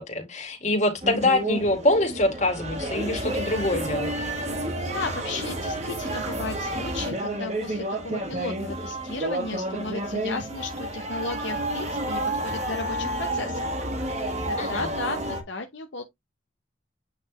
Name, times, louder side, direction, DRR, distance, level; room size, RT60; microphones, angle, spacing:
voice 1, 0.0-4.2 14.6-14.8, left 1 dB, 35° left, 2.1 m, -24 dB
sound 1, 1.0-15.4, right 1 dB, 35° right, 1.4 m, -30 dB
voice 2, 4.8-13.7 14.5-16.0, left 3 dB, 60° left, 0.9 m, -35 dB
8.5 x 4.0 x 3.0 m
head